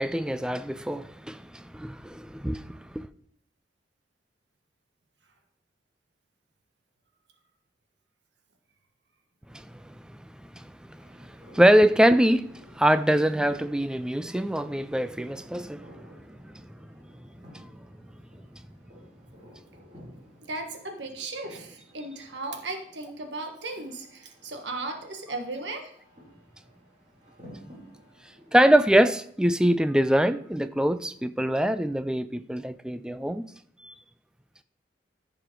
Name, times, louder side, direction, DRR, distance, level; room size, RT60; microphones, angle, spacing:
voice 1, 0.0-3.1 9.5-10.0 10.4-16.6 17.5-17.9 28.5-33.4 33.8-33.9, right 1 dB, 5° right, 0.3 m, -24 dB
sound 1, 11.0-29.3, equal, 30° right, 2.6 m, -53 dB
voice 2, 20.5-25.9, right 2 dB, 70° right, 1.5 m, -36 dB
14.0 x 5.0 x 4.6 m
head